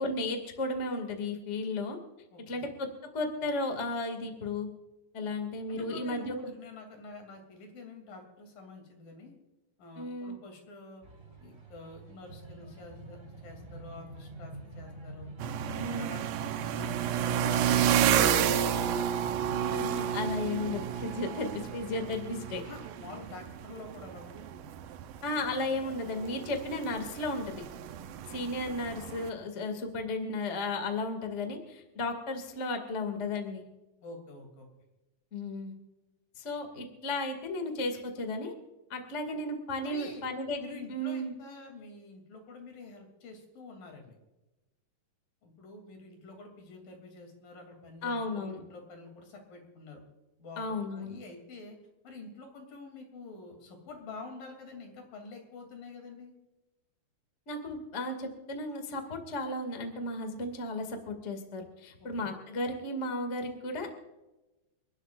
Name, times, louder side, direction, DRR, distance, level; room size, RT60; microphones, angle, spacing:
voice 1, 0.0-2.0 2.5-2.9 3.1-4.7 5.1-6.5 10.0-10.4 15.8-16.2 19.7-22.6 25.2-27.6 28.3-33.7 35.3-35.8 36.4-38.5 38.9-41.3 48.0-48.6 50.6-51.2 57.5-64.0, left 2 dB, 25° left, 5 dB, 2.0 m, -34 dB
voice 2, 2.3-2.6 5.7-9.3 9.8-11.0 11.4-15.3 15.7-18.9 22.6-24.7 34.0-34.7 39.8-40.2 40.6-44.2 45.4-50.0 50.4-51.8 52.0-56.3 62.0-62.3, left 3 dB, 70° left, 3 dB, 4.6 m, -47 dB
sound 1, 11.0-21.2, right 1 dB, 20° right, 2.9 m, -46 dB
sound 2, 15.4-29.3, right 9 dB, 75° right, 2.3 m, -31 dB
29.5 x 12.5 x 2.5 m, 1.0 s
omnidirectional pair, 4.1 m